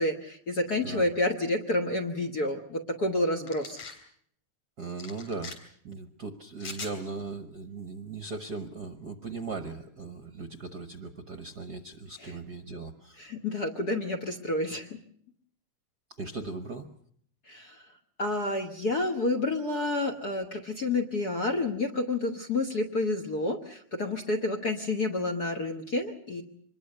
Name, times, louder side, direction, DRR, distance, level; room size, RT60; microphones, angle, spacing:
voice 1, 0.0-3.8 12.2-12.3 13.2-15.0 17.5-17.8 18.2-26.4, left 2 dB, 45° left, 7 dB, 1.4 m, -29 dB
sound 1, 3.5-4.0 5.0-5.6 6.6-7.0, left 4 dB, 60° left, 4.6 m, -41 dB
voice 2, 4.8-5.6 5.8-13.2 16.1-16.9, right 4 dB, 50° right, 9 dB, 1.3 m, -38 dB
25.5 x 21.0 x 6.7 m, 0.64 s
omnidirectional pair, 3.4 m